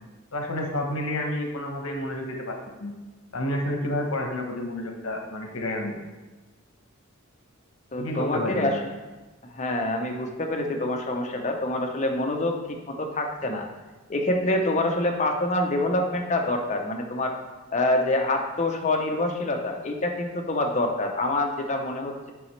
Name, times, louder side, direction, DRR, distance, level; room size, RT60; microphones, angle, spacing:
voice 1, 0.3-2.9 3.3-6.0 8.0-8.8, left 1 dB, 80° left, 2 dB, 1.0 m, -30 dB
voice 2, 7.9-8.8 9.5-13.7 14.1-17.3 17.7-22.3, left 2 dB, 35° left, 3 dB, 0.6 m, -26 dB
6.9 x 5.0 x 3.2 m, 1.2 s
head